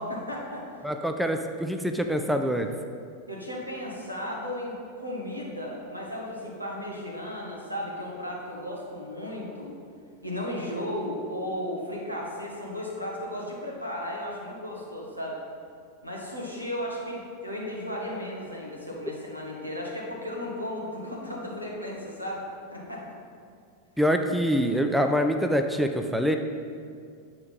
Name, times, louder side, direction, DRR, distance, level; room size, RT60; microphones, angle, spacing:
voice 1, 0.0-0.8 3.3-9.7 10.2-15.4 16.0-22.4 22.7-23.0, left 1 dB, 90° right, -3 dB, 1.4 m, -35 dB
voice 2, 0.8-2.7 24.0-26.4, equal, ahead, 6 dB, 0.4 m, -25 dB
8.7 x 4.8 x 4.1 m, 2.3 s
figure-of-eight pair, 90°, 0 cm